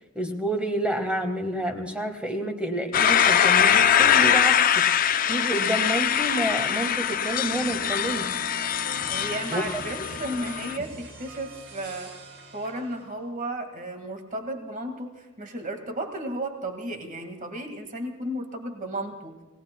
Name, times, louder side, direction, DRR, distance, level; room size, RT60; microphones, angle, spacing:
voice 1, 0.1-4.8 5.3-8.6 9.5-9.6, right 1 dB, 5° right, 4 dB, 1.4 m, -29 dB
sound 1, 2.9-10.8, left 9 dB, 45° left, 0.5 m, -22 dB
sound 2, 7.5-13.2, right 1 dB, 70° right, 3.5 m, -42 dB
voice 2, 9.1-12.1 12.5-19.4, right 1 dB, 40° right, 5 dB, 1.8 m, -34 dB
28.0 x 18.5 x 2.2 m, 1.2 s
head